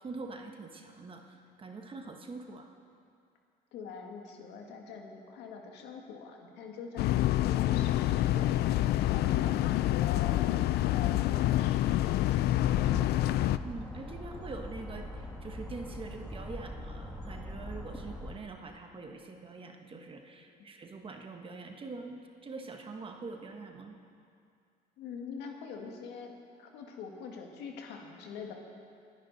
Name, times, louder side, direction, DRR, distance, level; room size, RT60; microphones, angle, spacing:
voice 1, 0.0-2.7 13.6-24.0, right 3 dB, 30° right, 3 dB, 1.3 m, -44 dB
voice 2, 3.7-8.6 8.9-13.2 25.0-28.5, left 5 dB, 90° left, 2 dB, 1.9 m, -44 dB
sound 1, 7.0-13.6, left 14 dB, 70° left, 0.4 m, -27 dB
sound 2, 12.5-18.3, left 1 dB, 5° left, 1.5 m, -42 dB
22.0 x 10.5 x 4.1 m, 2.4 s
cardioid pair, 110°, 17 cm